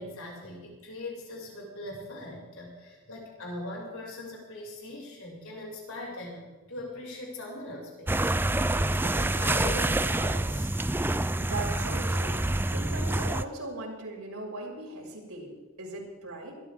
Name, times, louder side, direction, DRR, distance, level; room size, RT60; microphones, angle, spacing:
voice 1, 0.0-10.7, left 1 dB, 70° left, -2 dB, 6.3 m, -41 dB
sound 1, 8.1-13.4, right 2 dB, 10° right, 0.4 m, -27 dB
voice 2, 11.4-12.5 12.7-16.5, right 2 dB, 85° right, -3 dB, 6.2 m, -38 dB
23.0 x 14.5 x 3.7 m, 1.2 s
head